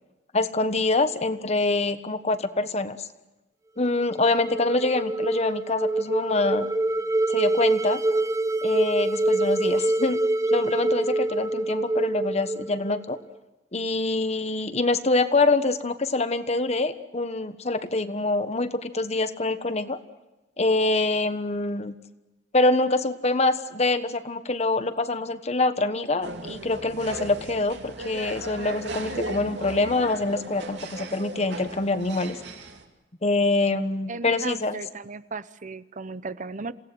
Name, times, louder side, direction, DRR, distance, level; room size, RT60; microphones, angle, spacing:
voice 1, 0.3-3.1 3.8-6.7 7.3-8.0 8.6-10.2 10.5-13.2 13.7-20.0 20.6-21.9 22.5-32.4 33.2-34.8, left 2 dB, 40° left, 10 dB, 1.3 m, -25 dB
sound 1, 4.0-13.2, right 2 dB, 20° right, 1.1 m, -25 dB
sound 2, 26.2-32.8, right 2 dB, 70° right, 2.9 m, -37 dB
voice 2, 34.1-36.7, right 4 dB, 45° right, 14 dB, 0.8 m, -36 dB
28.0 x 17.5 x 7.9 m, 1.0 s
head